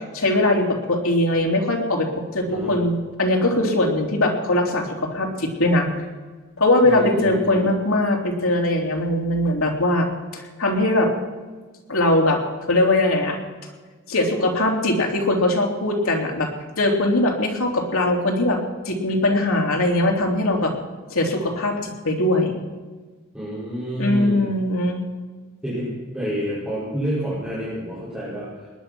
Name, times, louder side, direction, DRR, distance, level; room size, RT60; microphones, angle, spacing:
voice 1, 0.0-5.9 6.6-10.1 10.3-11.1 11.9-13.4 14.1-16.5 16.8-18.6 18.8-20.7 21.1-22.6 24.0-25.0, left 1 dB, 80° left, 1 dB, 3.1 m, -21 dB
voice 2, 6.8-7.7 23.3-24.5 25.6-25.9 26.1-28.7, equal, 5° right, -11 dB, 5.5 m, -28 dB
19.5 x 10.5 x 6.1 m, 1.4 s
head